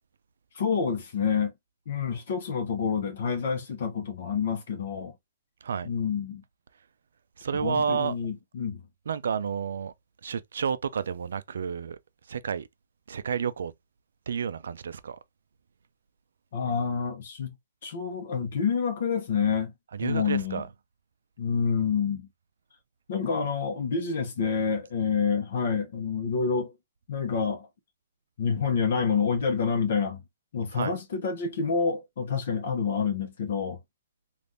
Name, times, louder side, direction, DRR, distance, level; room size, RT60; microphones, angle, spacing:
voice 1, 0.5-1.5 1.9-5.1 5.8-6.4 7.5-8.8 16.5-17.5 17.8-19.7 20.0-20.6 21.4-22.3 23.1-26.7 27.1-27.7 28.4-30.2 30.5-33.8, left 6 dB, 60° left, 0.8 m, -28 dB
voice 2, 7.4-8.1 9.1-9.9 10.2-12.0 12.3-12.7 13.1-13.7 14.3-15.2 19.9-20.7 30.7-30.9, right 6 dB, 80° right, 0.4 m, -30 dB
3.4 x 2.5 x 2.5 m
hypercardioid pair, 155°, 0 cm